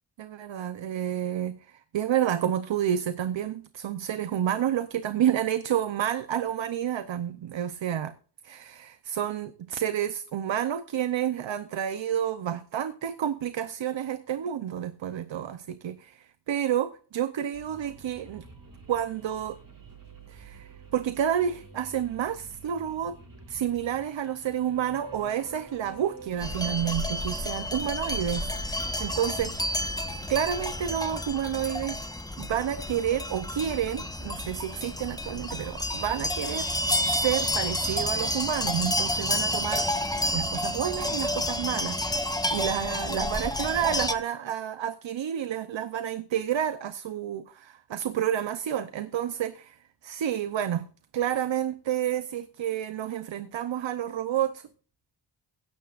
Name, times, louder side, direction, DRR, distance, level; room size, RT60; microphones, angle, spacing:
voice 1, 0.2-8.1 8.4-18.4 18.9-19.6 20.3-23.2 23.5-29.6 30.3-32.0 32.4-36.7 37.0-39.9 40.3-50.9 51.1-54.7, right 10 dB, 80° right, 0.8 m, -30 dB
sound 1, 17.5-31.1, right 5 dB, 45° right, 5.5 m, -49 dB
sound 2, 26.4-44.1, left 1 dB, 10° left, 1.2 m, -30 dB
16.5 x 12.5 x 2.5 m
wide cardioid pair, 80°, 45 cm